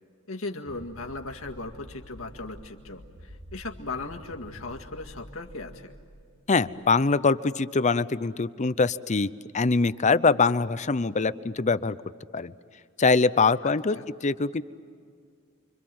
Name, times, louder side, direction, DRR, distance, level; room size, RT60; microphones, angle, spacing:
voice 1, 0.3-5.9 13.6-14.0, left 3 dB, 75° left, 3 dB, 2.0 m, -38 dB
sound 1, 0.6-6.9, equal, 65° right, 2.4 m, -48 dB
voice 2, 6.5-12.0 12.3-12.5 13.0-14.6, left 4 dB, 35° left, 15 dB, 0.6 m, -23 dB
29.5 x 24.5 x 7.7 m, 2.2 s
head